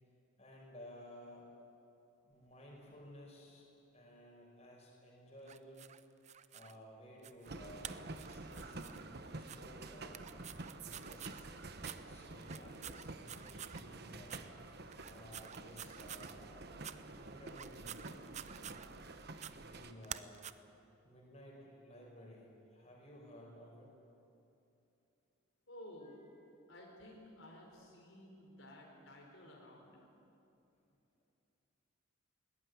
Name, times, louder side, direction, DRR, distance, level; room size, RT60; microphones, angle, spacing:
voice 1, 0.4-1.5 2.2-3.7 3.9-5.9 6.5-10.3 10.8-11.5 12.1-14.4 15.1-16.7 17.2-18.1 19.6-20.4 21.0-23.9 26.0-26.2, equal, 30° left, -2 dB, 5.4 m, -56 dB
sound 1, 5.5-6.7 7.2-7.5 7.8-9.0 9.4-9.6 10.1-11.4 11.8-12.0 12.4-13.8 14.2-14.4 14.9-16.3 16.8-16.9 17.5-19.1 19.4-19.5 20.0-20.5, right 10 dB, 35° right, 0.6 m, -49 dB
sound 2, 7.5-19.9, right 2 dB, 50° right, 1.2 m, -49 dB
voice 2, 25.7-26.1 26.7-30.1, left 1 dB, 70° left, -1 dB, 4.1 m, -54 dB
21.5 x 18.0 x 9.4 m, 2.8 s
head